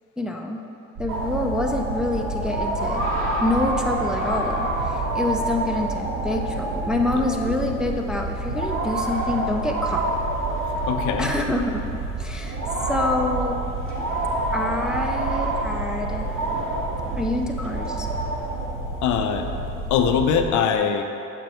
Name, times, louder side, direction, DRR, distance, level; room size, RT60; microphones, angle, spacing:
voice 1, 0.2-0.6 1.0-3.0 3.4-10.1 11.2-11.8 12.2-12.6 12.9-13.6 14.5-16.3 17.2-18.1, left 2 dB, ahead, 1 dB, 0.5 m, -26 dB
sound 1, 1.0-20.5, right 3 dB, 55° right, 1.0 m, -31 dB
sound 2, 1.1-20.4, right 1 dB, 35° right, 1.7 m, -29 dB
voice 2, 10.9-11.3 19.0-19.5 19.9-21.0, left 7 dB, 50° left, 6 dB, 0.7 m, -22 dB
9.0 x 6.7 x 3.0 m, 2.8 s
figure-of-eight pair, 55°, 39 cm